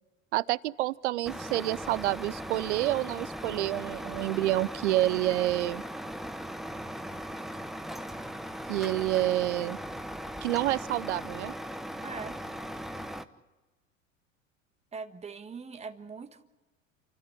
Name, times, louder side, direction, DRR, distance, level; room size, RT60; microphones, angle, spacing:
voice 1, 0.3-5.8 8.7-9.8 10.4-11.5, right 16 dB, 60° right, 21 dB, 0.7 m, -28 dB
Truck, 1.2-13.2, equal, ahead, 0.9 m, -39 dB
voice 2, 12.0-12.4 14.9-16.4, right 5 dB, 15° right, 8 dB, 1.4 m, -41 dB
29.0 x 14.0 x 9.8 m, 1.2 s
figure-of-eight pair, 75°, 40 cm